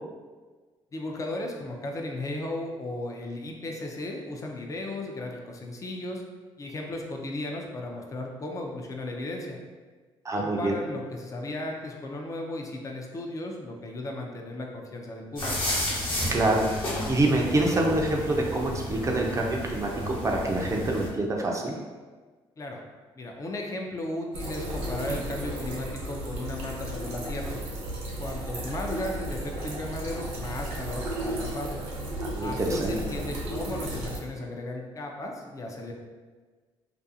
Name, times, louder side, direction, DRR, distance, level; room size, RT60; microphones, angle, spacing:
voice 1, 0.9-6.2 6.6-9.6 10.3-15.5 22.6-22.8 23.1-27.6 28.2-31.8 32.4-35.9, left 1 dB, 30° left, 1 dB, 0.4 m, -35 dB
voice 2, 10.2-10.8 16.3-16.6 17.1-21.7 32.2-32.9, right 2 dB, 30° right, -1 dB, 0.4 m, -26 dB
sound 1, 15.4-21.1, left 1 dB, 50° left, 0.9 m, -32 dB
sound 2, 24.3-34.2, right 1 dB, 85° right, 0.7 m, -34 dB
2.4 x 2.3 x 2.6 m, 1.4 s
supercardioid pair, 70°, 11 cm